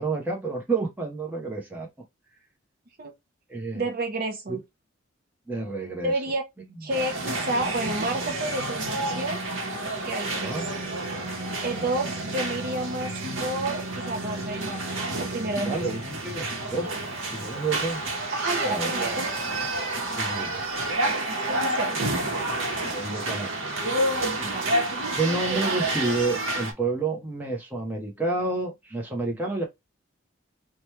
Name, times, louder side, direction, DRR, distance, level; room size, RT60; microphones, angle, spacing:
voice 1, 0.0-1.9 3.5-3.8 4.5-4.6 5.5-6.1 10.3-10.6 11.7-11.9 15.6-16.9 17.3-18.0 18.6-19.1 20.2-20.6 21.9-22.1 22.8-23.8 25.2-29.6, right 3 dB, 10° right, 0.8 m, -29 dB
voice 2, 3.7-4.6 6.0-6.4 6.8-9.4 10.0-10.6 11.6-14.9 15.2-15.9 18.3-19.4 20.4-20.6 21.5-22.1 24.4-24.7, right 2 dB, 45° right, 0.5 m, -30 dB
sound 1, 6.9-26.7, right 2 dB, 75° right, 0.9 m, -29 dB
Keyboard (musical), 10.2-18.3, right 1 dB, 30° right, 1.3 m, -40 dB
2.9 x 2.2 x 3.1 m
head